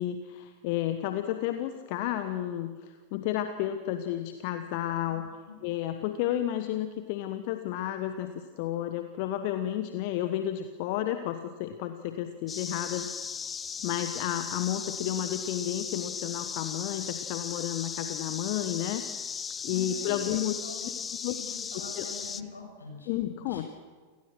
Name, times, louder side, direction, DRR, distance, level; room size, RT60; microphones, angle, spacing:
voice 1, 0.0-5.3 5.6-13.1 13.8-19.0 19.6-20.6 21.2-21.3 21.7-22.1 23.1-23.7, left 12 dB, 45° left, 9 dB, 1.1 m, -32 dB
sound 1, 12.5-22.4, left 6 dB, 20° left, 0.7 m, -37 dB
voice 2, 19.7-20.3 20.6-20.9 21.2-23.1 23.4-23.6, left 3 dB, 75° left, 1 dB, 6.6 m, -44 dB
28.5 x 18.5 x 6.2 m, 1.5 s
figure-of-eight pair, 90°, 0 cm